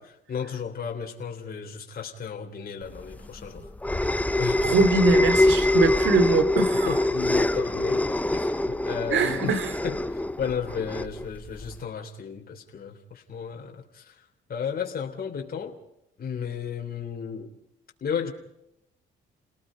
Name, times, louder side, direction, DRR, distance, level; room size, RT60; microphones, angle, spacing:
voice 1, 0.3-3.7 4.4-4.7 6.9-9.5 9.8-14.2 14.5-15.8 16.2-17.5 18.0-18.3, left 7 dB, 50° left, 1 dB, 3.5 m, -34 dB
sound 1, 3.0-11.8, left 1 dB, 5° left, 0.9 m, -24 dB
voice 2, 4.6-6.9 9.1-9.7, right 4 dB, 75° right, 12 dB, 2.8 m, -23 dB
30.0 x 18.5 x 5.2 m, 0.80 s
cardioid pair, 90°, 20 cm